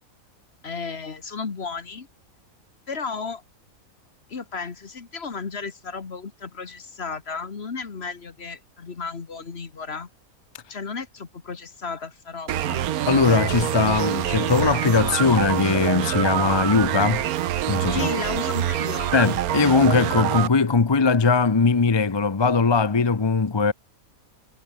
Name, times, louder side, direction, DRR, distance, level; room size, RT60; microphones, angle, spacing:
voice 1, 0.6-2.1 2.9-3.4 4.3-10.1 10.7-12.8 17.9-19.1, left 5 dB, 45° left, 1.8 m, -34 dB
sound 1, 12.5-20.5, right 11 dB, 85° right, 1.3 m, -25 dB
voice 2, 13.1-17.3 17.7-18.1 19.1-23.7, left 4 dB, 25° left, 0.6 m, -20 dB
omnidirectional pair, 1.5 m